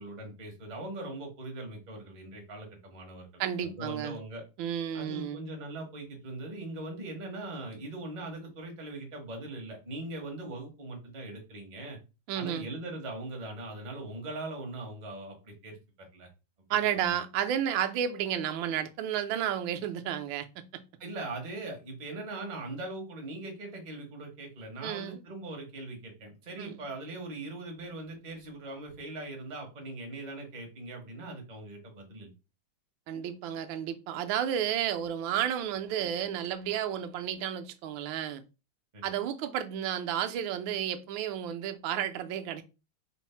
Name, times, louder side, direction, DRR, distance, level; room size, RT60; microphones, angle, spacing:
voice 1, 0.0-4.4 4.9-12.0 12.3-15.8 16.1-16.3 21.0-32.3 38.9-39.1, right 2 dB, 40° right, 0.6 m, -40 dB
voice 2, 3.4-4.2 4.6-5.4 12.3-12.7 16.7-20.6 24.8-25.2 26.6-26.8 33.1-38.4 39.0-42.6, right 10 dB, 75° right, 1.2 m, -32 dB
4.4 x 2.0 x 4.2 m
omnidirectional pair, 2.3 m